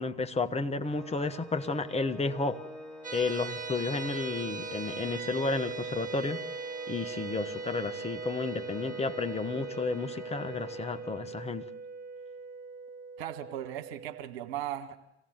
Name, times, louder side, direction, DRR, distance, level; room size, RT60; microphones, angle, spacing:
voice 1, 0.0-2.6 3.1-6.4 6.9-11.6, left 3 dB, 20° left, 9 dB, 1.3 m, -32 dB
Organ, 0.8-11.6, left 1 dB, ahead, 6.8 m, -48 dB
sound 1, 3.0-14.2, right 4 dB, 25° right, 1.9 m, -40 dB
voice 2, 13.2-15.0, right 11 dB, 65° right, 6 dB, 2.0 m, -37 dB
26.0 x 16.5 x 8.0 m, 0.93 s
figure-of-eight pair, 70°, 34 cm